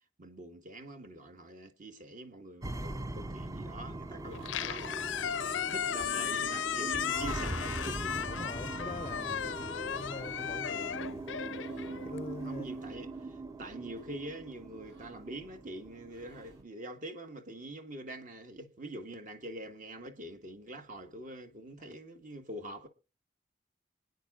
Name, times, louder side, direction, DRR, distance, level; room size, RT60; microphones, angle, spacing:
voice 1, 0.2-8.3 8.8-8.9 9.6-9.8 11.8-12.1 12.4-22.9, right 1 dB, 45° right, 1.5 m, -45 dB
sound 1, 2.6-16.6, right 2 dB, 20° right, 0.6 m, -41 dB
Squeak, 4.3-12.6, left 8 dB, 85° left, 0.5 m, -35 dB
sound 2, 6.1-6.7 7.3-8.0 8.7-9.2 10.0-10.6 11.0-11.1 11.4-12.0 12.7-14.1 14.8-15.8 16.1-16.7, right 2 dB, 70° right, 3.8 m, -65 dB
voice 2, 8.3-9.6 9.9-11.3 12.0-12.8 21.9-22.0, left 3 dB, 35° left, 0.5 m, -44 dB
26.5 x 9.5 x 2.4 m
head